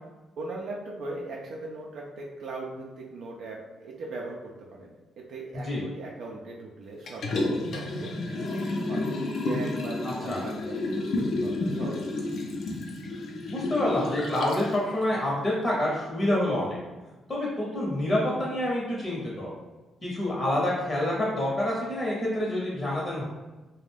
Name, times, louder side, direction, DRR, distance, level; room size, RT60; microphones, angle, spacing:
voice 1, 0.4-4.4 4.7-4.9 5.3-8.1 8.5-9.1 9.4-12.1, right 2 dB, 70° right, -2 dB, 0.4 m, -39 dB
Liquid, 7.1-14.7 15.2-15.3, left 2 dB, 65° left, 0.5 m, -30 dB
voice 2, 13.5-16.8 17.3-19.5 20.0-23.2, left 1 dB, 35° left, -5 dB, 0.8 m, -27 dB
2.4 x 2.1 x 3.3 m, 1.2 s
cardioid pair, 90°, 0 cm